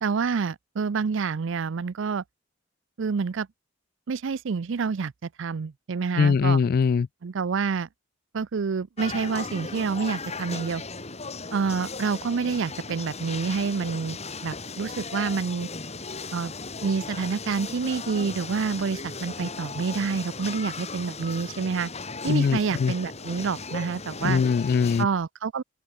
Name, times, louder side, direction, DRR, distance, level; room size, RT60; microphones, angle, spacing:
voice 1, 0.0-2.2 3.0-3.5 4.1-5.1 5.4-6.6 7.2-7.9 8.3-10.8 11.5-15.7 16.3-16.5 16.8-21.9 22.2-24.4 25.0-25.6, right 5 dB, 65° right, 0.5 m, -28 dB
voice 2, 6.2-7.1 22.3-22.9 24.2-25.1, left 5 dB, 50° left, 0.3 m, -22 dB
sound 1, 9.0-25.1, left 4 dB, 35° left, 4.4 m, -37 dB
open air
head